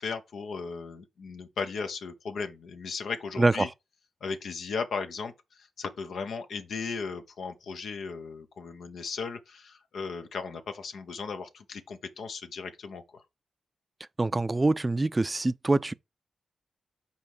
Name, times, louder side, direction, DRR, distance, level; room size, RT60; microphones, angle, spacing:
voice 1, 0.0-3.7 4.2-5.3 5.6-13.2, left 5 dB, 80° left, 0.9 m, -36 dB
voice 2, 14.2-15.9, right 2 dB, 25° right, 0.4 m, -24 dB
5.6 x 4.2 x 4.7 m
cardioid pair, 65°, 0 cm